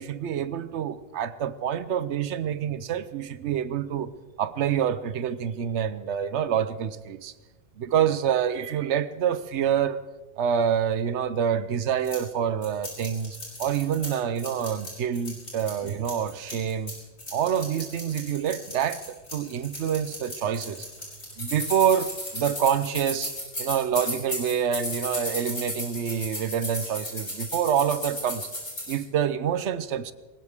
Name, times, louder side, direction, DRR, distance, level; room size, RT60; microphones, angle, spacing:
voice 1, 0.0-4.1 4.4-7.3 7.8-10.0 10.4-16.9 17.3-20.9 21.4-23.3 23.6-28.5 28.9-30.1, right 8 dB, 85° right, 1.0 m, -27 dB
sound 1, 12.0-12.2 12.6-14.1 14.4-16.9 17.2-28.9, left 1 dB, 80° left, 6.4 m, -35 dB
21.0 x 19.0 x 3.6 m
omnidirectional pair, 1.1 m